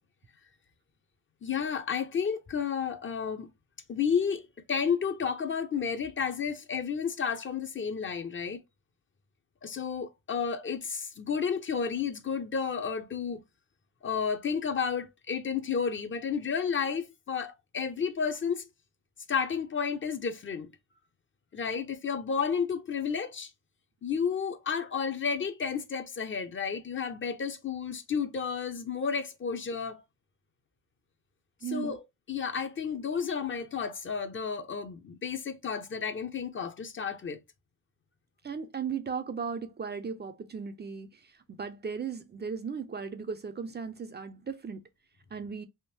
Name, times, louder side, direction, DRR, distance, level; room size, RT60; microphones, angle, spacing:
voice 1, 1.4-3.5 3.9-4.4 4.7-8.6 9.6-13.4 14.0-18.7 19.3-20.7 21.5-23.5 24.0-30.0 31.7-32.0 32.3-37.4, left 6 dB, 40° left, 0.7 m, -31 dB
voice 2, 31.6-32.0 38.4-44.8 45.3-45.7, right 6 dB, 30° right, 0.5 m, -36 dB
3.6 x 2.5 x 2.7 m
cardioid pair, 90°, 32 cm